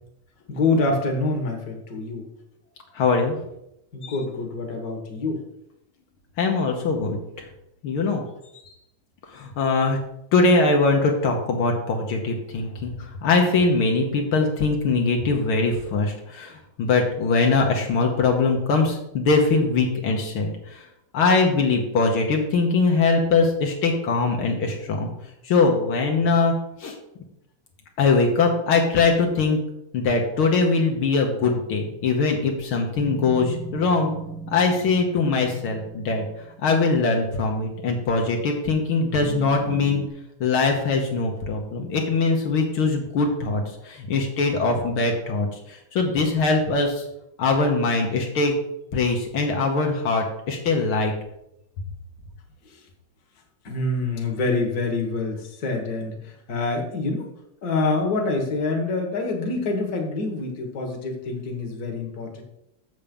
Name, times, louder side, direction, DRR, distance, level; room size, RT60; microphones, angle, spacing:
voice 1, 0.5-2.3 3.9-5.4 52.6-52.8 53.6-57.3 57.6-62.4, left 3 dB, 45° left, 2 dB, 1.9 m, -26 dB
voice 2, 3.0-3.4 4.0-4.1 6.4-7.2 7.8-8.2 9.3-10.0 10.3-12.9 13.2-20.8 21.1-25.1 25.4-26.5 26.8-26.9 28.0-29.6 29.9-34.1 34.5-36.2 36.6-40.0 40.4-45.5 45.9-47.0 47.4-48.5 48.9-51.1, left 3 dB, 75° left, 1 dB, 2.0 m, -22 dB
sound 1, 33.0-38.1 39.2-40.1, right 6 dB, 90° right, 2.2 m, -37 dB
7.5 x 7.1 x 5.3 m, 0.81 s
omnidirectional pair, 2.4 m